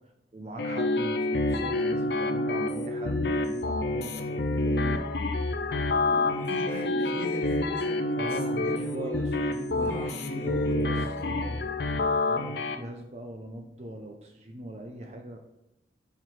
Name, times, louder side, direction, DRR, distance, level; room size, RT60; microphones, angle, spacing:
voice 1, 0.3-5.0 8.2-11.7 12.3-15.4, right 1 dB, 35° right, 3 dB, 0.5 m, -40 dB
sound 1, 0.6-12.8, left 2 dB, 65° left, 0.5 m, -28 dB
voice 2, 5.9-9.3 9.7-11.5, equal, 15° left, -3 dB, 1.4 m, -39 dB
5.8 x 4.6 x 4.6 m, 0.87 s
head